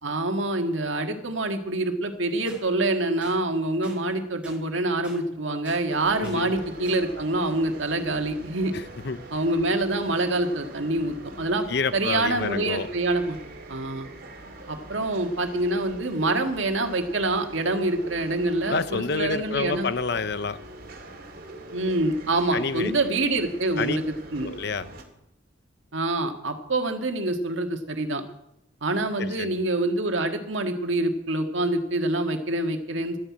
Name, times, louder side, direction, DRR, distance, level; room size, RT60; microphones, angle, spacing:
voice 1, 0.0-8.7 9.3-11.7 11.9-13.4 13.7-14.1 14.7-19.9 21.7-24.0 24.3-24.5 25.9-28.2 28.8-33.2, right 2 dB, 75° right, 5 dB, 1.8 m, -26 dB
sound 1, 2.5-2.6 3.2-3.4 3.8-4.0 4.4-4.6 5.0-5.2 5.7-5.8 6.2-6.4 6.9-7.0, right 1 dB, 5° right, 5.1 m, -45 dB
sound 2, 5.9-25.0, right 2 dB, 50° right, 2.5 m, -43 dB
voice 2, 6.2-6.5 8.7-9.2 11.7-12.9 18.7-20.6 22.5-22.9 23.8-24.0 24.4-24.9 29.2-29.5, left 4 dB, 55° left, 13 dB, 0.8 m, -28 dB
12.5 x 10.0 x 8.6 m, 0.81 s
head